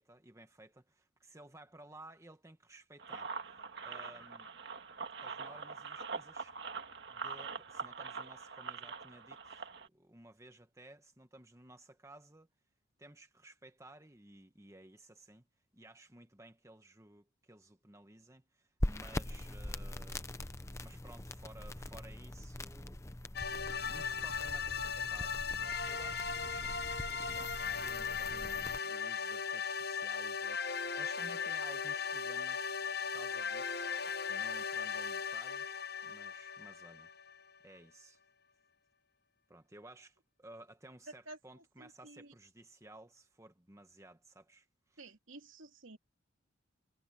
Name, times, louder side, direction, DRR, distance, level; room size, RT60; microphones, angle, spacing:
voice 1, 0.0-3.3 3.8-4.5 5.2-6.6 7.1-12.5 13.0-15.5 15.7-20.4 20.8-23.0 23.5-25.4 25.8-26.7 27.1-32.8 33.1-34.0 34.3-37.1 37.6-38.2 39.5-45.0, right 1 dB, 15° right, 1.2 m, -56 dB
sound 1, 3.0-9.9, right 5 dB, 55° right, 2.2 m, -43 dB
sound 2, 18.8-28.8, left 1 dB, 15° left, 0.6 m, -42 dB
sound 3, 23.3-37.6, left 6 dB, 50° left, 1.0 m, -38 dB
voice 2, 41.8-42.3 45.0-46.0, right 2 dB, 75° right, 2.8 m, -52 dB
head